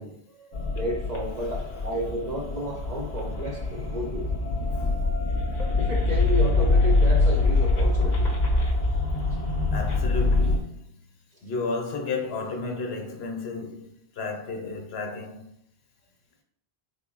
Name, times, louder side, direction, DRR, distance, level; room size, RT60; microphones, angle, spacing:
voice 1, 0.0-4.3 5.8-8.3, equal, 50° right, 0.5 m, -32 dB
sound 1, 0.5-10.6, left 2 dB, 50° left, 0.6 m, -24 dB
voice 2, 1.4-1.8 2.9-3.1 4.7-5.0 9.7-11.0 11.4-15.6, left 3 dB, 70° left, 0.9 m, -33 dB
3.8 x 2.0 x 3.7 m
omnidirectional pair, 1.1 m